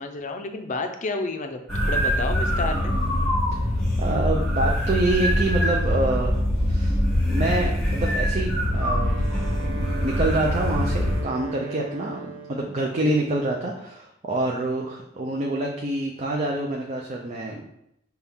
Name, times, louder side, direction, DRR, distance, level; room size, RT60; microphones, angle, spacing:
voice 1, 0.0-1.6 1.9-3.0, left 3 dB, 40° left, 6 dB, 0.5 m, -30 dB
sound 1, 1.7-11.2, equal, ahead, 1.5 m, -23 dB
voice 2, 3.5-6.4 6.6-9.3 9.6-17.8, right 2 dB, 35° right, -1 dB, 0.5 m, -27 dB
Wind instrument woodwind instrument, 8.5-12.8, right 4 dB, 90° right, 0.6 m, -39 dB
5.8 x 2.3 x 3.5 m, 0.79 s
head